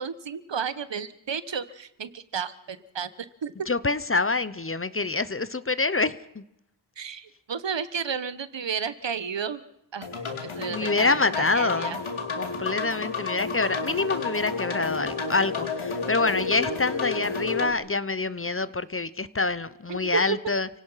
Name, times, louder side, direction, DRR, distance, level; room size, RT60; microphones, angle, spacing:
voice 1, 0.0-3.5 7.0-9.6 9.9-10.1 10.4-12.0 19.9-20.4, right 6 dB, 65° right, 14 dB, 1.3 m, -32 dB
voice 2, 3.7-6.4 10.7-12.0 12.4-20.7, left 3 dB, 30° left, 16 dB, 0.8 m, -26 dB
sound 1, 10.0-17.7, left 4 dB, 85° left, 3.1 m, -31 dB
29.5 x 18.0 x 5.8 m, 0.81 s
wide cardioid pair, 110°, 47 cm